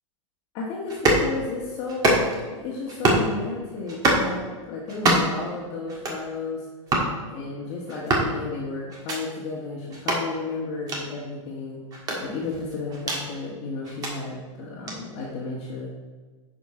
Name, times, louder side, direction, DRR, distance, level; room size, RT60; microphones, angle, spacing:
voice 1, 0.5-2.3 2.5-4.4 4.7-6.7 7.3-11.8 12.2-15.9, left 3 dB, 30° left, -5 dB, 1.5 m, -33 dB
sound 1, 0.9-1.3 1.9-2.5 2.9-3.3 3.9-4.3 4.9-5.4 5.9-6.2 6.9-7.1 7.9-8.3 8.9-9.2 9.9-10.2 10.9-11.0 11.9-13.2 13.8-14.1 14.9-15.0, right 1 dB, 20° right, 1.7 m, -24 dB
10.0 x 5.2 x 5.0 m, 1.4 s
supercardioid pair, 160°, 17 cm